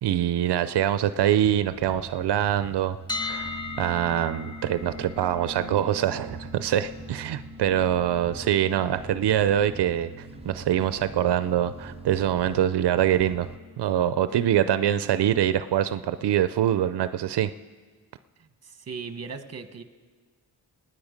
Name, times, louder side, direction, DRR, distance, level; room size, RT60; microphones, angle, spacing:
voice 1, 0.0-3.5 3.8-13.5 13.8-17.5, right 11 dB, 85° right, 13 dB, 0.5 m, -24 dB
sound 1, 1.4-13.6, right 5 dB, 15° right, 0.6 m, -44 dB
sound 2, 3.1-15.0, left 4 dB, 10° left, 0.9 m, -41 dB
voice 2, 18.4-19.8, right 5 dB, 40° right, 9 dB, 1.1 m, -38 dB
27.0 x 9.6 x 5.1 m, 1.5 s
wide cardioid pair, 130°, 39 cm